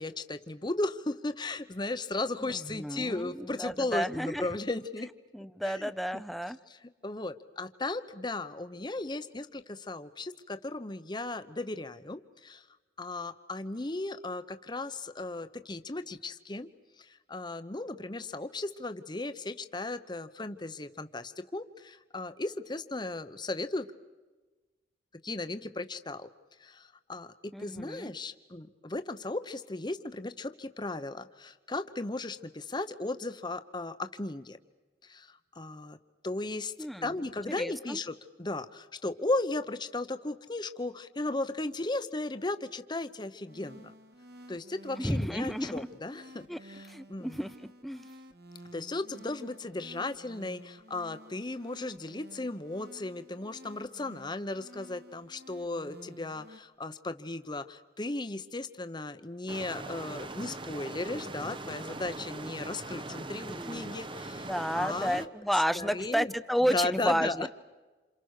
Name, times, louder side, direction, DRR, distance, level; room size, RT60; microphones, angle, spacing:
voice 1, 0.0-5.1 5.6-5.9 7.0-9.4 9.9-10.3 10.7-12.2 13.0-14.4 14.7-14.9 15.2-16.7 17.3-21.2 21.5-21.6 22.1-23.8 25.3-26.2 27.1-27.3 27.6-28.6 28.9-30.5 30.8-31.1 31.7-32.4 32.7-33.9 34.2-34.4 35.6-35.9 36.2-36.7 37.0-38.1 38.4-38.6 39.0-43.3 43.6-43.7 44.5-46.2 47.1-47.3 48.7-50.6 50.9-56.4 56.8-57.6 58.0-64.1 64.7-66.3 66.7-67.5, left 2 dB, 25° left, 10 dB, 1.0 m, -35 dB
voice 2, 2.4-4.5 5.3-6.6 27.5-28.1 36.8-37.1 37.6-38.0 45.0-45.9 46.5-46.6 46.9-47.5 47.8-48.0 63.5-63.9 64.5-67.5, equal, ahead, 13 dB, 0.7 m, -31 dB
sound 1, 43.5-56.6, equal, 60° right, 2.1 m, -52 dB
sound 2, 59.5-65.3, right 2 dB, 30° right, 0.9 m, -41 dB
28.5 x 28.0 x 6.6 m, 1.3 s
head